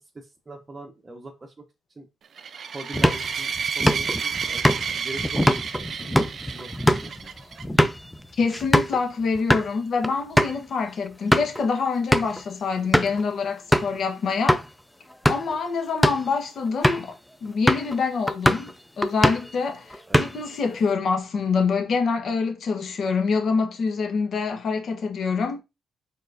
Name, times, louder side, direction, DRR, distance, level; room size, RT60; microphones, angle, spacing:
voice 1, 0.1-1.6 2.0-2.1 2.7-4.6 4.9-7.3 20.1-20.2, right 2 dB, 25° right, 0.8 m, -41 dB
sound 1, 2.4-7.6, right 6 dB, 55° right, 0.4 m, -31 dB
sound 2, 2.9-9.0 9.3-9.7 10.0-10.1 10.4-10.6 11.1-11.6 12.1-12.4 12.9-13.2 13.7-14.0 14.5-14.6 15.1-15.5 15.9-16.3 16.8-17.1 17.7-18.0 18.3-18.7 19.0-19.5 19.9-20.5, equal, 5° left, 0.4 m, -22 dB
voice 2, 8.4-14.6 15.3-25.6, left 5 dB, 60° left, 1.1 m, -26 dB
4.4 x 4.1 x 2.6 m
cardioid pair, 90°, 0 cm